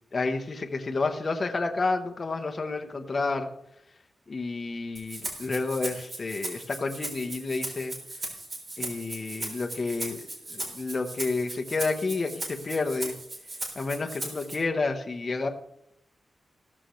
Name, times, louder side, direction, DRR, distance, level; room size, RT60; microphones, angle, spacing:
voice 1, 0.1-3.5 4.3-7.9 8.8-10.2 10.5-13.1 13.7-15.5, left 3 dB, 35° left, 4 dB, 0.9 m, -30 dB
Rattle (instrument), 5.0-14.6, right 2 dB, 35° right, 3.5 m, -38 dB
15.5 x 13.5 x 3.1 m, 0.77 s
wide cardioid pair, 160°, 0 cm